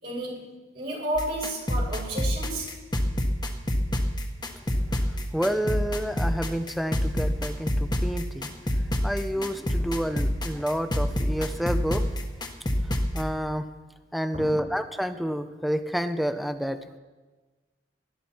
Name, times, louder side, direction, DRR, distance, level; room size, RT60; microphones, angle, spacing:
voice 1, 0.0-2.9 14.3-14.6, right 1 dB, 60° right, -4 dB, 6.0 m, -32 dB
sound 1, 1.1-13.2, equal, 25° left, 1.3 m, -28 dB
voice 2, 5.1-12.1 12.8-13.7 14.1-17.0, equal, ahead, 9 dB, 0.7 m, -29 dB
19.5 x 12.5 x 4.5 m, 1.3 s
head